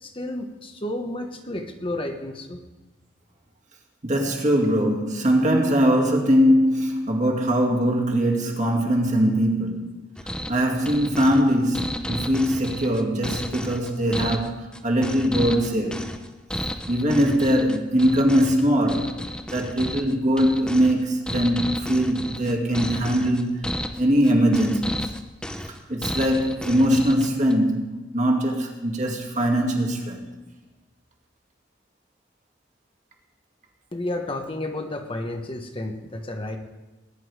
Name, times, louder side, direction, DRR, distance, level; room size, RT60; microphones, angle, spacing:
voice 1, 0.0-2.6 33.9-36.6, left 1 dB, 30° left, 1.1 m, -31 dB
voice 2, 4.0-9.9 10.5-16.1 16.9-19.2 19.5-25.1 25.9-30.3, equal, 40° right, 2.2 m, -21 dB
sound 1, 10.2-27.5, equal, 5° left, 0.7 m, -33 dB
20.0 x 10.0 x 4.8 m
head